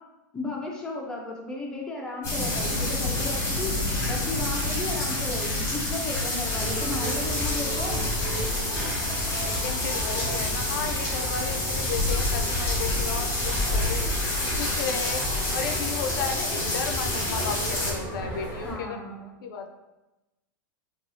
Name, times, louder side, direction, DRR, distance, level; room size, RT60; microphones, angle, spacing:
voice 1, 0.3-3.8 4.0-8.1 18.6-19.3, left 2 dB, 5° left, -2 dB, 0.4 m, -34 dB
sound 1, 2.2-17.9, left 2 dB, 25° left, 1.0 m, -28 dB
voice 2, 4.7-5.2 9.4-14.0 14.4-15.2 15.5-19.7, left 6 dB, 75° left, 5 dB, 0.4 m, -34 dB
sound 2, 6.5-18.7, equal, 20° right, 0.9 m, -34 dB
2.6 x 2.3 x 2.8 m, 1.0 s
supercardioid pair, 145°, 11 cm